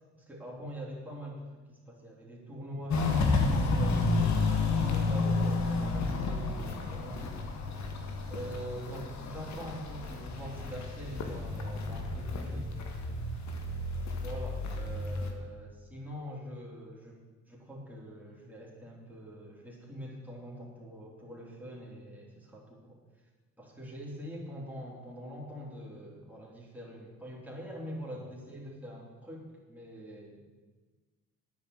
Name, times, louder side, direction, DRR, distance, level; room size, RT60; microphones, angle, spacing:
voice 1, 0.1-7.3 8.3-13.0 14.2-17.2 17.5-23.0 23.6-30.4, equal, 5° right, -4 dB, 3.9 m, -44 dB
Walk footsteps, 2.9-15.3, left 3 dB, 65° left, 1.9 m, -31 dB
9.9 x 8.5 x 8.3 m, 1.3 s
cardioid pair, 90°, 30 cm